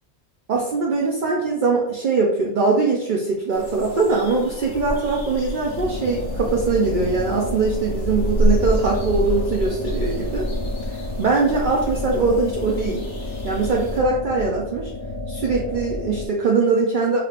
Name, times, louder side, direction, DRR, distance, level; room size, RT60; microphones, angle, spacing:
voice 1, 0.5-10.4 11.2-13.0 13.4-14.9 15.3-17.2, right 4 dB, 55° right, -2 dB, 0.7 m, -21 dB
sound 1, 3.5-14.0, equal, 90° left, 1.3 m, -28 dB
sound 2, 5.7-16.3, left 2 dB, 70° left, 1.1 m, -31 dB
4.9 x 3.1 x 2.5 m, 0.82 s
omnidirectional pair, 1.1 m